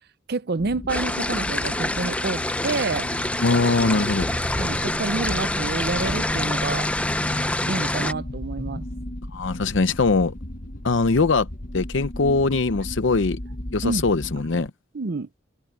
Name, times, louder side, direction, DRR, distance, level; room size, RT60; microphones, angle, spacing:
voice 1, 0.3-3.1 4.6-6.9 7.7-8.9 13.8-14.0 14.9-15.3, right 3 dB, 55° right, 0.7 m, -28 dB
sound 1, 0.6-14.7, left 1 dB, 45° left, 1.5 m, -35 dB
sound 2, 0.9-8.1, left 1 dB, 5° left, 0.6 m, -26 dB
voice 2, 3.4-4.3 9.3-10.3 10.8-11.5 11.7-13.4 13.7-14.7, left 3 dB, 70° left, 0.7 m, -21 dB
sound 3, 4.0-7.4, equal, 30° right, 3.4 m, -39 dB
head